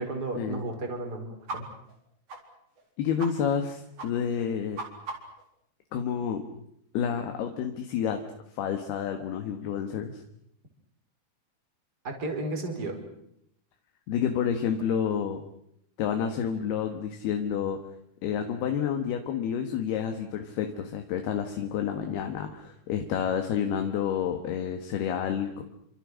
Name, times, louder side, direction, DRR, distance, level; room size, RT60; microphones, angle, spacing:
voice 1, 0.0-1.7 12.0-13.0, right 2 dB, 25° right, 4 dB, 5.0 m, -33 dB
sound 1, 1.5-1.6 1.9-2.0 2.3-2.4 2.8-2.9 3.2-3.3 3.6-3.7 4.0-4.1 4.4-5.4, right 3 dB, 40° right, 4.9 m, -38 dB
voice 2, 3.0-4.8 5.9-6.4 6.9-8.2 8.6-10.2 14.1-15.4 16.0-17.8 18.2-25.6, left 8 dB, 75° left, 5 dB, 3.6 m, -29 dB
29.0 x 26.5 x 6.4 m, 0.76 s
omnidirectional pair, 4.7 m